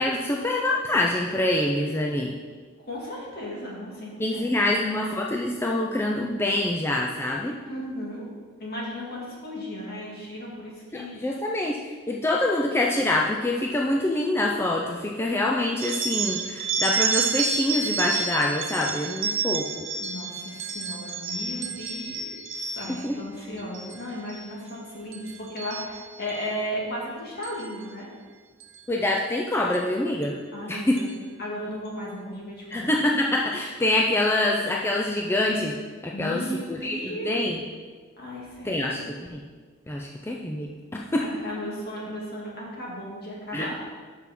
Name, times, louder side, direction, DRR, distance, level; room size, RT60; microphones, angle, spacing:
voice 1, 0.0-2.3 4.2-7.5 10.9-19.9 23.0-23.2 28.9-30.4 30.7-31.0 32.7-35.8 36.0-36.4 36.7-37.6 38.6-39.0 39.3-39.4 39.9-41.2 43.5-43.7, left 1 dB, 10° left, -1 dB, 0.4 m, -25 dB
voice 2, 2.8-4.8 7.6-8.3 8.6-11.1 20.0-28.1 30.5-32.9 36.1-37.4 38.2-39.2 41.2-43.7, equal, 55° left, -4 dB, 2.2 m, -35 dB
sound 1, 15.8-23.1 23.6-24.0 24.3-24.7 25.1-26.5 27.4-27.7 28.6-28.8 29.7-29.8 30.2-30.3 30.9-31.1, right 5 dB, 85° right, 0.7 m, -30 dB
5.9 x 5.6 x 6.0 m, 1.5 s
head